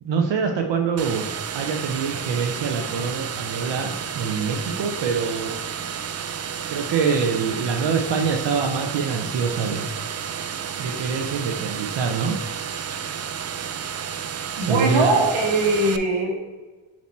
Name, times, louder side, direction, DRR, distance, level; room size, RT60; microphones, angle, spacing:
voice 1, 0.0-1.3 1.5-5.5 6.7-9.9 10.8-12.4 14.7-15.2, right 5 dB, 65° right, 3 dB, 0.8 m, -25 dB
sound 1, 1.0-16.0, right 7 dB, 35° right, 0.4 m, -31 dB
voice 2, 14.6-16.5, right 2 dB, 85° right, 0 dB, 1.6 m, -21 dB
7.3 x 3.0 x 4.3 m, 1.3 s
cardioid pair, 80°, 46 cm